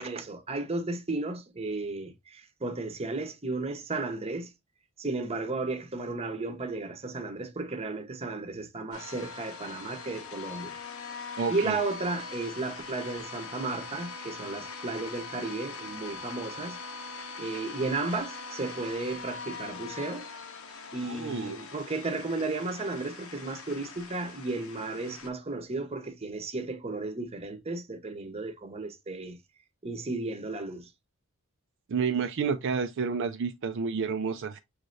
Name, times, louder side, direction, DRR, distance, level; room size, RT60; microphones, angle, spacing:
voice 1, 0.0-4.5 5.0-10.8 11.5-16.8 17.4-20.3 20.9-29.4 29.8-30.9, right 3 dB, 30° right, 0.9 m, -34 dB
sound 1, 8.9-25.3, left 4 dB, 90° left, 1.0 m, -42 dB
voice 2, 11.4-11.8 21.1-21.6 31.9-34.6, right 5 dB, 60° right, 0.4 m, -30 dB
6.4 x 3.2 x 2.5 m
head